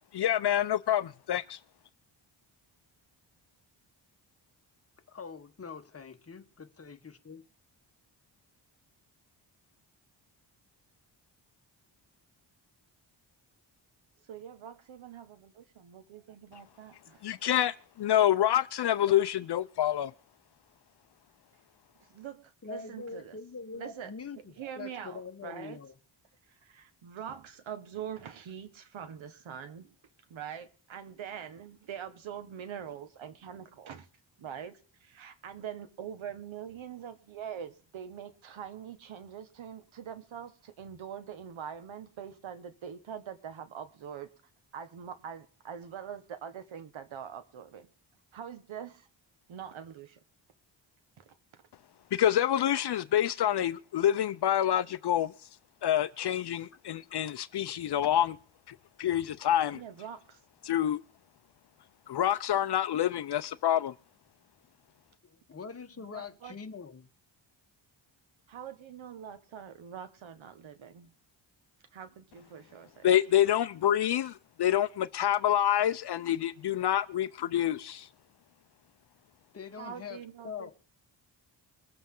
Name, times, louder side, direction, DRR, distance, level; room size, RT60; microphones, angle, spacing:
voice 1, 0.1-1.6 17.2-20.1 52.1-55.3 55.8-58.4 59.0-59.8 60.7-61.0 62.1-63.9 73.0-78.1, left 11 dB, 60° left, 0.6 m, -27 dB
voice 2, 5.1-7.4 22.6-26.0 65.2-67.1 79.5-80.7, left 5 dB, 30° left, 1.4 m, -44 dB
voice 3, 14.3-17.2 22.1-23.4 23.7-24.1 24.6-25.8 26.5-29.9 30.3-34.1 34.4-44.3 44.7-47.9 48.3-49.1 49.5-50.2 51.2-51.6 59.7-60.4 66.1-66.5 68.5-71.1 71.9-73.1 79.8-80.7, right 8 dB, 90° right, 1.5 m, -44 dB
22.5 x 7.8 x 3.8 m
wide cardioid pair, 110°, 45 cm